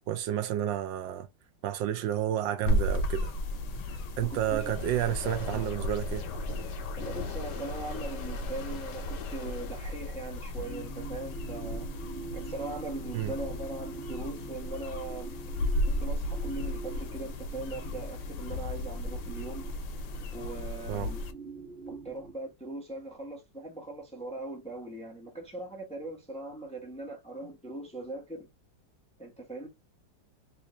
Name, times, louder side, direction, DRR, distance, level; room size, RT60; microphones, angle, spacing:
voice 1, 0.1-1.3 1.6-3.3 4.2-6.2 13.1-13.3 20.9-21.1, right 11 dB, 80° right, 1.3 m, -30 dB
sound 1, 2.7-21.3, left 1 dB, 85° left, 1.5 m, -35 dB
voice 2, 4.3-4.7 7.0-11.9 12.3-15.4 15.9-19.7 20.3-21.2 21.9-28.5 29.2-29.7, right 2 dB, 5° left, 0.8 m, -40 dB
sound 2, 4.4-10.2, left 4 dB, 70° left, 1.5 m, -41 dB
sound 3, 10.6-22.3, right 4 dB, 40° right, 1.2 m, -45 dB
3.4 x 3.0 x 2.9 m
omnidirectional pair, 2.0 m